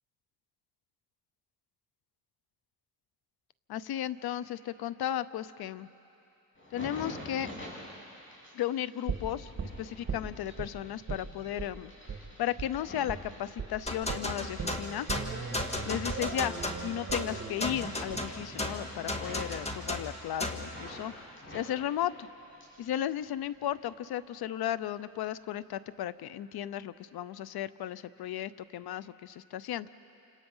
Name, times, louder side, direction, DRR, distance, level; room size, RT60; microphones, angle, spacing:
voice 1, 3.7-5.9 6.7-7.5 8.5-9.5 9.8-11.9 12.4-15.1 15.8-22.3 22.8-29.9, left 11 dB, 80° left, 16 dB, 0.7 m, -35 dB
sound 1, 6.5-14.2 14.7-17.3 17.5-18.2 18.5-21.0 21.4-22.9 23.2-23.9 24.5-24.7, left 1 dB, 30° left, 7.8 m, -48 dB
sound 2, 9.1-10.7 11.1-11.3 11.6-11.7 12.1-12.2 12.6-12.7 13.1-13.3 13.6-13.7 14.1-20.1 20.4-20.5, right 5 dB, 40° right, 3.1 m, -39 dB
sound 3, 13.9-20.7, left 1 dB, 15° left, 1.8 m, -35 dB
28.0 x 26.5 x 5.6 m, 2.8 s
cardioid pair, 90°, 37 cm